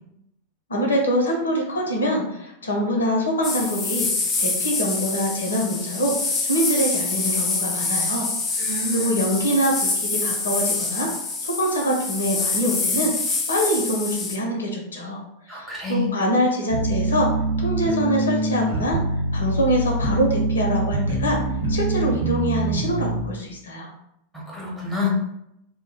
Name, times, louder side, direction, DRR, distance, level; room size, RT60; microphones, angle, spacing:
voice 1, 0.7-6.1 6.4-8.3 8.5-11.1 11.4-13.1 13.5-15.2 15.5-17.3 17.6-19.0 19.3-21.4 21.7-23.9, equal, 70° left, 0 dB, 0.5 m, -24 dB
sound 1, 3.4-14.4, left 3 dB, 20° left, 0.4 m, -26 dB
voice 2, 8.6-9.3 15.5-16.1 24.3-25.1, left 2 dB, 10° right, -4 dB, 0.8 m, -27 dB
sound 2, 16.7-23.2, right 2 dB, 70° right, 0.9 m, -24 dB
2.1 x 2.0 x 3.1 m, 0.78 s
figure-of-eight pair, 90°, 0 cm